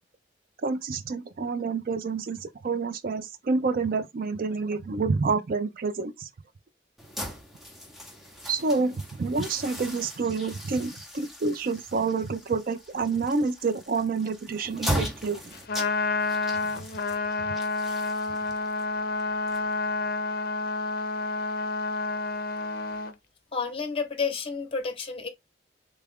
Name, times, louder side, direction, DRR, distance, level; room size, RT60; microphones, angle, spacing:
voice 1, 0.6-6.3 8.4-15.4 16.8-16.9, right 4 dB, 55° right, 0.4 m, -28 dB
sound 1, 7.0-20.1, equal, ahead, 0.8 m, -38 dB
Trumpet, 15.5-23.1, left 3 dB, 60° left, 0.5 m, -29 dB
voice 2, 23.5-25.3, left 5 dB, 35° left, 0.8 m, -30 dB
3.3 x 2.4 x 3.5 m
head